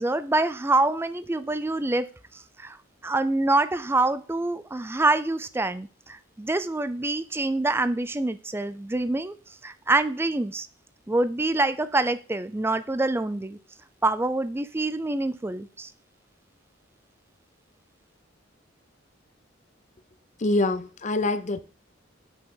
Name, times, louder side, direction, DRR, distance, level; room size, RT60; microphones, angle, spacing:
voice 1, 0.0-2.1 2.3-2.8 3.0-9.3 9.6-10.7 11.1-13.6 14.0-15.9, right 2 dB, 10° right, 0.4 m, -26 dB
voice 2, 20.4-21.6, left 2 dB, 40° left, 0.7 m, -25 dB
8.4 x 5.4 x 3.7 m
head